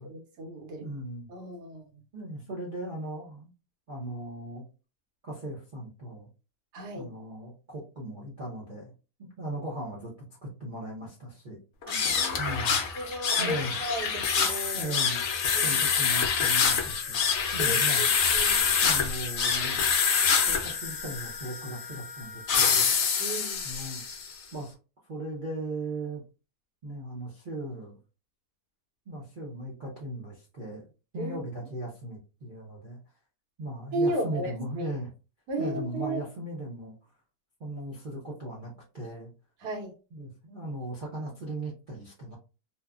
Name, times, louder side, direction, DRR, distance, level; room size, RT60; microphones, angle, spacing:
voice 1, 0.0-0.9 1.3-2.0 6.7-7.1 11.9-12.4 12.9-14.9 15.5-15.8 17.6-18.1 18.3-18.7 23.2-23.6 31.2-31.4 33.9-34.9 35.5-36.2 39.6-39.9, right 1 dB, 85° right, 2 dB, 1.4 m, -34 dB
voice 2, 0.8-1.3 2.1-3.5 3.9-4.6 5.2-6.3 7.0-8.9 9.4-10.1 10.4-11.6 12.4-12.8 13.4-13.8 14.7-17.2 17.5-18.4 18.8-19.8 20.5-22.9 23.6-24.0 24.5-24.7 25.1-26.2 26.8-28.0 29.1-30.9 31.1-33.0 33.6-35.1 35.6-37.0 37.6-39.3 40.1-42.3, right 1 dB, 50° right, -5 dB, 0.6 m, -37 dB
sound 1, 11.8-24.3, left 6 dB, 65° left, 0.7 m, -26 dB
3.0 x 2.1 x 2.3 m, 0.33 s
omnidirectional pair, 1.7 m